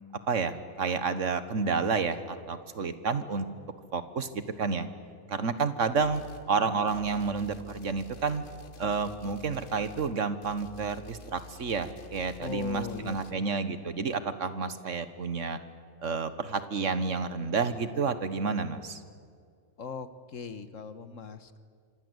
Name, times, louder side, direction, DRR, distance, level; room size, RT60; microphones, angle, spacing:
voice 1, 0.3-3.5 3.9-4.9 5.3-6.2 6.5-8.4 8.8-15.6 16.0-19.0, right 5 dB, 80° right, 12 dB, 1.8 m, -30 dB
sound 1, 6.0-6.5 6.9-13.3, left 1 dB, 45° left, 1.4 m, -49 dB
voice 2, 12.4-13.5 19.8-21.6, left 5 dB, 90° left, 12 dB, 1.8 m, -39 dB
26.5 x 25.0 x 8.2 m, 2.1 s
omnidirectional pair, 1.3 m